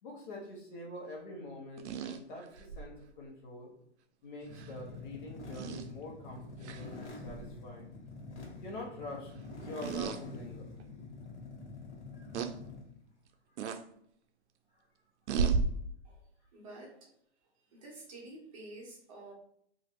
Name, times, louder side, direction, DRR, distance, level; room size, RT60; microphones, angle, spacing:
voice 1, 0.0-3.7 4.2-7.9 8.6-9.3 9.6-10.8 12.1-12.3 14.7-14.8, left 2 dB, 45° left, -1 dB, 1.0 m, -45 dB
sound 1, 1.8-2.9 4.5-4.7 5.5-5.9 6.6-6.9 7.3-7.5 9.8-10.2 10.8-10.9 12.3-12.5 13.6-13.8 15.3-15.7, right 5 dB, 85° right, 0.5 m, -33 dB
sound 2, 4.4-13.0, left 3 dB, 90° left, 1.1 m, -46 dB
voice 2, 16.5-17.1 17.7-19.3, right 2 dB, 30° right, -3 dB, 0.8 m, -49 dB
3.0 x 2.5 x 2.8 m, 0.69 s
hypercardioid pair, 165°, 33 cm